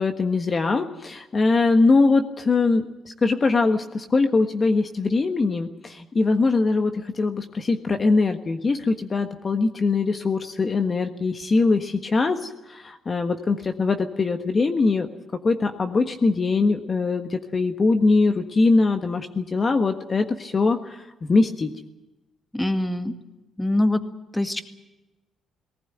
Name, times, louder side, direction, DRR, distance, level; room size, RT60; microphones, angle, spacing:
voice 1, 0.0-2.8 3.2-15.1 15.4-21.7, left 3 dB, 35° left, 6 dB, 1.4 m, -22 dB
voice 2, 22.5-23.1 23.6-24.0 24.3-24.6, left 1 dB, 10° left, 7 dB, 2.0 m, -23 dB
19.0 x 19.0 x 9.2 m, 1.0 s
cardioid pair, 90°, 0 cm